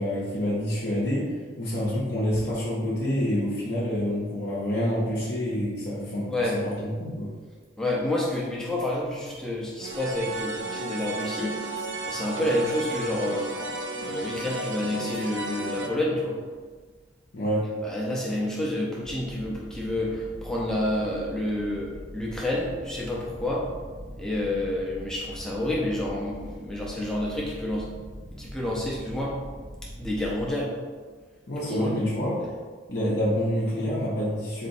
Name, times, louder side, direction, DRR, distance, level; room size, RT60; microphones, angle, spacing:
voice 1, 0.0-7.3 17.3-17.7 31.5-32.4 32.9-34.7, equal, 55° left, -7 dB, 0.6 m, -27 dB
voice 2, 7.8-11.5 12.0-13.5 14.0-16.4 17.8-23.7 24.2-27.9 28.3-29.4 30.0-30.7 31.7-31.9, left 1 dB, 5° left, -5 dB, 0.6 m, -29 dB
sound 1, 9.8-15.9, right 2 dB, 65° right, 0.4 m, -34 dB
sound 2, 19.0-30.5, equal, 45° right, 1.4 m, -43 dB
4.1 x 2.8 x 2.6 m, 1.5 s
head